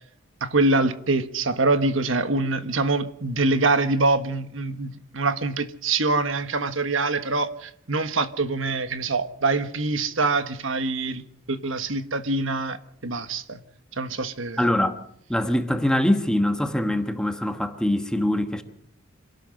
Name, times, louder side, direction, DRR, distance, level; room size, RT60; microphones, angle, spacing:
voice 1, 0.4-11.2 11.5-13.6 14.0-14.6, right 3 dB, 70° right, 1.4 m, -24 dB
voice 2, 14.6-15.0 15.3-18.6, left 1 dB, 5° left, 1.3 m, -23 dB
26.5 x 12.5 x 7.8 m
head